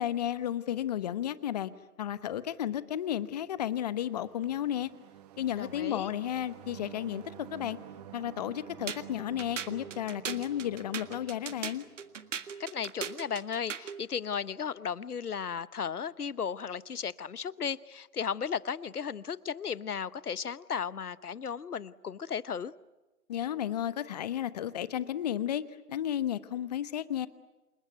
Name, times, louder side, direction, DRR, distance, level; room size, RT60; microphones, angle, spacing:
voice 1, 0.0-1.7 2.0-4.9 5.4-7.2 7.5-7.8 8.1-11.8 23.3-27.3, left 11 dB, 25° left, 16 dB, 0.9 m, -33 dB
sound 1, 3.8-12.5, right 11 dB, 25° right, 1.4 m, -50 dB
voice 2, 5.6-6.1 12.6-22.7, left 7 dB, 80° left, 19 dB, 1.1 m, -35 dB
sound 2, 8.9-14.0, right 7 dB, 55° right, 1.8 m, -39 dB
28.5 x 21.5 x 9.3 m, 1.1 s
figure-of-eight pair, 145°, 45 cm